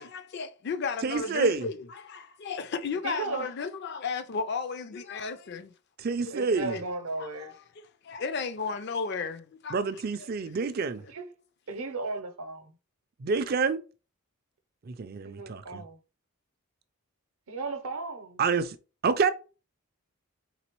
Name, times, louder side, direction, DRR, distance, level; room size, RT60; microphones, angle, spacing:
voice 1, 0.0-5.7 6.2-6.3 6.7-6.8 7.2-9.8, left 5 dB, 50° left, 0.4 m, -34 dB
voice 2, 1.0-1.7 6.0-6.8 9.7-11.0 13.2-13.8 14.9-15.8 18.4-18.8 19.0-19.3, right 4 dB, 45° right, 0.4 m, -27 dB
voice 3, 3.0-3.5 6.3-7.5 11.1-11.2 11.7-12.7 15.2-16.0 17.5-18.4, right 3 dB, 75° right, 0.7 m, -35 dB
4.1 x 3.6 x 3.0 m
head